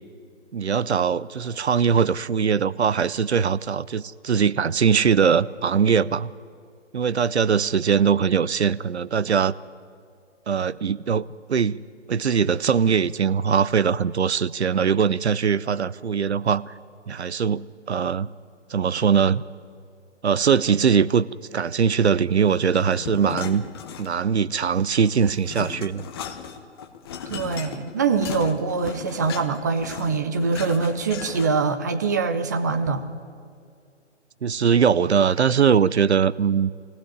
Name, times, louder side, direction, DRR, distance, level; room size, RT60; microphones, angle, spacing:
voice 1, 0.5-6.3 6.9-9.5 10.5-11.8 12.1-16.7 17.1-18.3 18.7-19.4 20.2-21.3 21.5-23.6 24.0-26.1 34.4-36.7, right 7 dB, 65° right, 18 dB, 0.7 m, -21 dB
sound 1, 22.7-24.4 24.7-31.7, left 7 dB, 20° left, 0.9 m, -36 dB
voice 2, 27.3-33.0, right 4 dB, 15° right, 9 dB, 0.6 m, -24 dB
22.0 x 16.0 x 9.9 m, 2.3 s
figure-of-eight pair, 140°, 36 cm